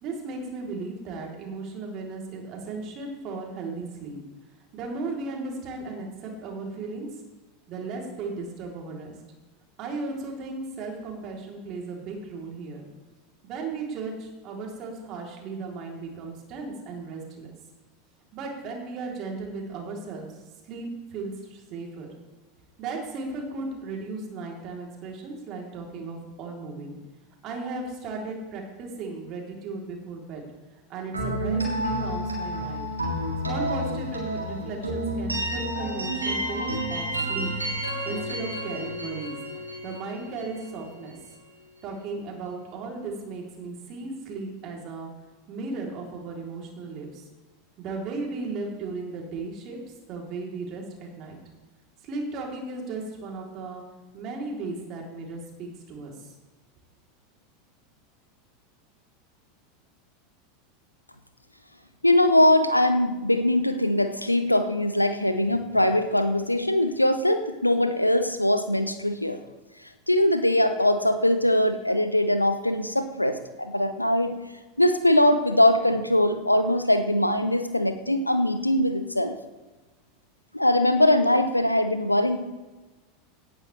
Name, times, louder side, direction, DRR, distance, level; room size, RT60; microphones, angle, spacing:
voice 1, 0.0-4.2 4.7-7.1 7.7-9.1 9.8-12.8 13.4-17.5 18.3-22.1 22.8-27.0 27.4-30.4 30.9-32.9 33.5-37.5 38.1-39.3 39.8-41.2 41.8-45.1 45.5-47.3 47.8-49.8 50.1-51.4 52.0-53.8 54.1-56.3, right 3 dB, 40° right, -1 dB, 3.4 m, -36 dB
sound 1, 31.1-40.9, right 1 dB, 85° right, 3.2 m, -30 dB
voice 2, 62.0-69.4 70.1-74.3 74.8-79.4 80.5-82.4, left 1 dB, 90° left, 9 dB, 0.8 m, -22 dB
17.5 x 9.0 x 3.3 m, 1.2 s
figure-of-eight pair, 85°, 0 cm